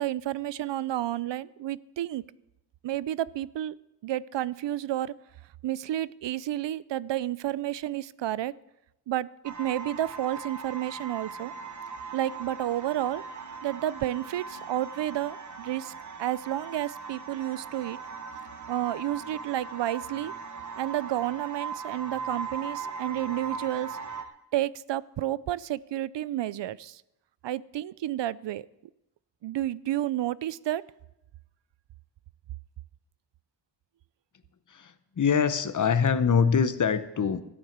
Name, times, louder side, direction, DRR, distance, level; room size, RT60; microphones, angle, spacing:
voice 1, 0.0-2.2 2.8-3.8 4.0-5.2 5.6-8.6 9.1-11.5 12.1-13.2 13.6-15.9 16.2-18.0 18.7-20.3 20.8-24.0 24.5-27.0 27.4-28.7 29.4-30.8, right 13 dB, 80° right, 20 dB, 0.5 m, -31 dB
sound 1, 9.4-24.2, right 5 dB, 45° right, 1.1 m, -39 dB
voice 2, 34.7-37.4, left 6 dB, 45° left, 12 dB, 0.9 m, -24 dB
14.0 x 8.8 x 7.2 m, 0.89 s
wide cardioid pair, 120°, 42 cm